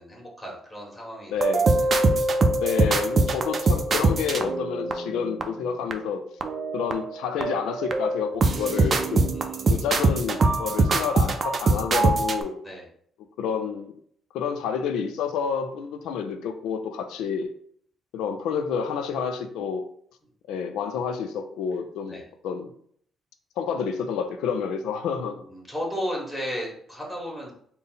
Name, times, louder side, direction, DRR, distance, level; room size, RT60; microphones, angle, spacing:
voice 1, 0.0-1.6 9.3-10.0 12.6-12.8 20.7-21.0 22.1-22.2 25.1-27.5, equal, 10° left, -3 dB, 1.5 m, -35 dB
voice 2, 1.3-1.7 2.6-6.2 6.7-9.2 9.7-12.6 13.4-13.9 14.3-17.5 18.1-19.8 20.5-22.7 23.6-25.4, left 6 dB, 90° left, 8 dB, 0.4 m, -29 dB
sound 1, 1.4-5.4 5.9-6.0 6.4-7.1 7.4-12.4, right 3 dB, 45° right, 0.4 m, -23 dB
3.7 x 2.0 x 3.9 m, 0.64 s
cardioid pair, 90°, 0 cm